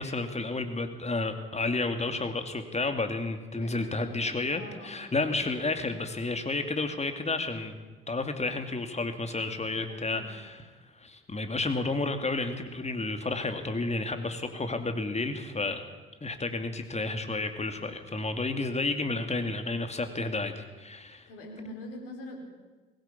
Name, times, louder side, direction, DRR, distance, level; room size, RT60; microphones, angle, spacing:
voice 1, 0.0-7.8 8.1-10.6 11.0-15.8 16.2-21.3, left 3 dB, 20° left, 7 dB, 2.6 m, -31 dB
voice 2, 3.5-5.3 9.9-10.3 18.7-19.2 21.3-22.4, left 1 dB, 75° left, 1 dB, 4.7 m, -44 dB
22.0 x 16.0 x 8.6 m, 1.3 s
figure-of-eight pair, 45°, 29 cm